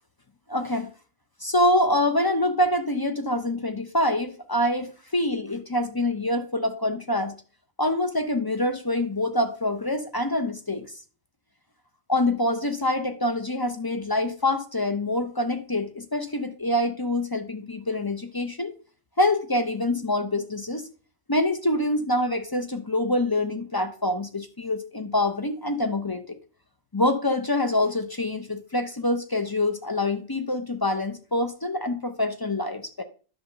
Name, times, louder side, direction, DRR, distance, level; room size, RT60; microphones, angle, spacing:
voice 1, 0.5-0.9 1.4-7.3 7.8-10.9 12.1-18.7 19.2-20.9 21.3-26.4 26.9-33.0, left 1 dB, 35° left, 0.3 m, -25 dB
10.5 x 3.5 x 6.6 m
omnidirectional pair, 1.5 m